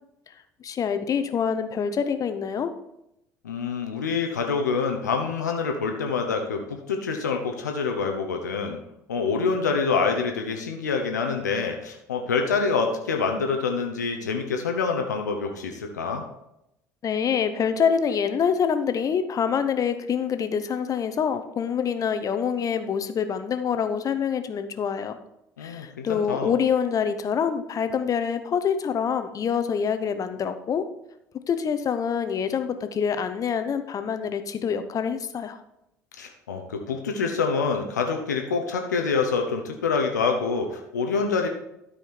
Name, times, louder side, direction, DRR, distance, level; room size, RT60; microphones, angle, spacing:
voice 1, 0.6-2.7 17.0-25.2 25.6-30.9 31.5-35.6, left 7 dB, 40° left, 9 dB, 0.9 m, -26 dB
voice 2, 3.4-8.8 9.1-16.2 25.6-26.5 36.2-41.5, left 5 dB, 80° left, 4 dB, 0.9 m, -26 dB
12.5 x 5.0 x 4.4 m, 0.84 s
figure-of-eight pair, 60°, 9 cm